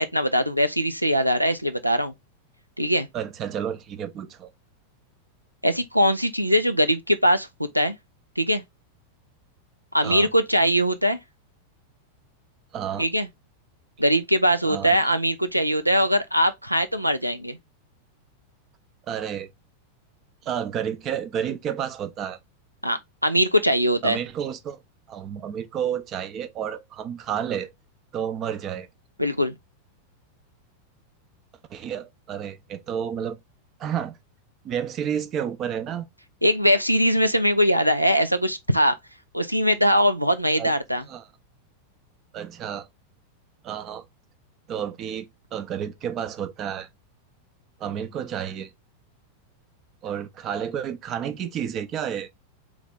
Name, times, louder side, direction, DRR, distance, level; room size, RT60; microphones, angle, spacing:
voice 1, 0.0-2.1 2.8-3.1 5.6-7.5 7.7-7.9 8.4-8.6 9.9-11.2 13.0-13.3 14.0-17.6 22.8-24.2 29.2-29.5 36.4-39.0 39.3-41.0, equal, 90° right, 0.5 m, -21 dB
voice 2, 3.1-4.5 10.0-10.3 12.7-13.1 14.6-15.0 19.1-19.5 20.4-22.4 24.0-24.8 25.1-27.7 28.1-28.9 31.7-33.4 33.8-34.2 34.6-36.1 40.6-40.7 41.1-41.3 42.3-42.9 43.6-44.0 44.7-46.9 47.8-48.7 50.0-52.3, right 8 dB, 30° right, 0.6 m, -30 dB
3.9 x 3.2 x 3.6 m
figure-of-eight pair, 90°, 0 cm